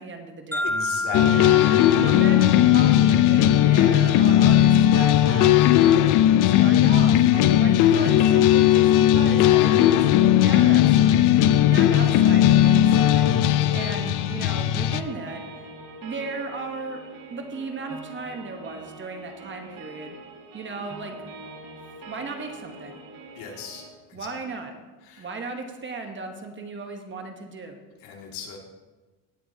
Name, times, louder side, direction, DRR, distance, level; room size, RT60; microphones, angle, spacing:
voice 1, 0.0-0.7 1.2-1.6 2.0-15.4 16.0-17.0 17.3-20.2 20.5-21.1 22.1-22.9 24.1-24.7 25.2-27.8, right 3 dB, 25° right, 5 dB, 1.1 m, -36 dB
sound 1, 0.5-4.5, left 1 dB, 5° left, 1.9 m, -32 dB
voice 2, 0.6-2.0 23.3-24.3 25.0-25.3 28.0-28.6, left 6 dB, 65° left, 0 dB, 2.3 m, -38 dB
sound 2, 1.1-15.0, left 12 dB, 45° left, 0.5 m, -17 dB
sound 3, 11.9-23.9, right 2 dB, 45° right, 2.2 m, -43 dB
18.0 x 8.2 x 2.8 m, 1.2 s
cardioid pair, 125°, 44 cm